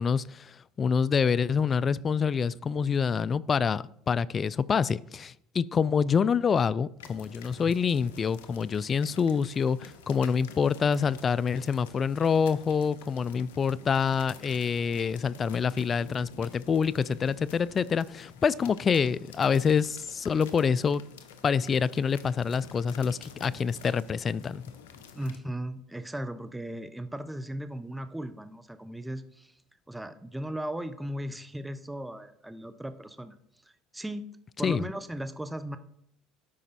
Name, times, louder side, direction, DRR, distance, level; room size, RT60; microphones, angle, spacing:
voice 1, 0.0-21.0 21.4-24.6 34.6-34.9, left 6 dB, 35° left, 21 dB, 0.3 m, -26 dB
sound 1, 7.0-25.4, left 7 dB, 85° left, 0.8 m, -49 dB
voice 2, 25.1-29.5 29.9-33.4 33.6-34.3 34.6-35.8, right 1 dB, 5° right, 11 dB, 0.8 m, -37 dB
12.0 x 5.0 x 4.2 m, 0.73 s
hypercardioid pair, 85°, 0 cm